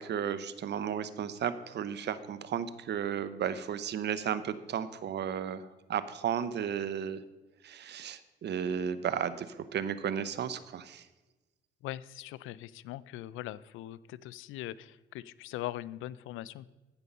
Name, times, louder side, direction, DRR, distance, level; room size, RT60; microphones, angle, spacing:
voice 1, 0.0-7.2 7.6-9.5 9.7-11.0, right 8 dB, 60° right, 14 dB, 0.8 m, -34 dB
voice 2, 11.8-16.7, left 14 dB, 90° left, 19 dB, 0.4 m, -41 dB
15.0 x 5.4 x 5.4 m, 1.1 s
cardioid pair, 90°, 20 cm